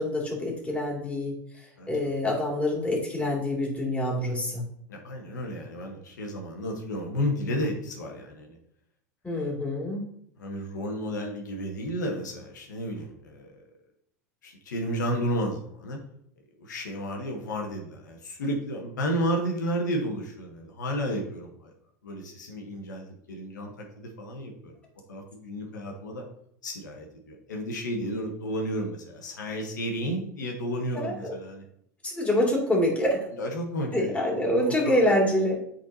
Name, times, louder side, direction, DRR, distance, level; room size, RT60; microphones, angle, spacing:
voice 1, 0.0-1.4 1.9-4.6 9.2-10.0 31.0-31.1 32.0-33.2 33.9-35.6, left 1 dB, 15° left, -3 dB, 2.6 m, -26 dB
voice 2, 1.8-2.1 4.9-8.6 9.3-9.5 10.4-13.6 14.4-16.0 16.6-21.7 22.0-24.7 25.1-26.3 26.6-31.6 33.4-34.3 34.5-35.0, equal, 85° left, 1 dB, 1.2 m, -32 dB
8.9 x 4.1 x 2.8 m, 0.70 s
hypercardioid pair, 90°, 10 cm